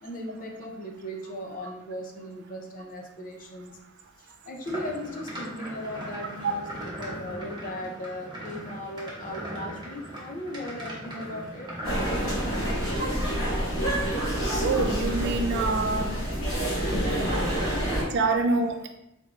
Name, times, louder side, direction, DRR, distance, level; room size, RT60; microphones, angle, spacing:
voice 1, 0.0-3.7 4.2-6.6 7.0-11.7, left 1 dB, 40° left, 1 dB, 0.5 m, -37 dB
sound 1, 4.6-13.1, right 1 dB, 20° right, 0.8 m, -39 dB
sound 2, 11.8-18.0, right 1 dB, 65° left, 1.3 m, -27 dB
voice 2, 14.6-16.1 18.1-18.9, right 3 dB, 55° right, 5 dB, 0.4 m, -25 dB
3.4 x 3.0 x 2.5 m, 0.82 s
head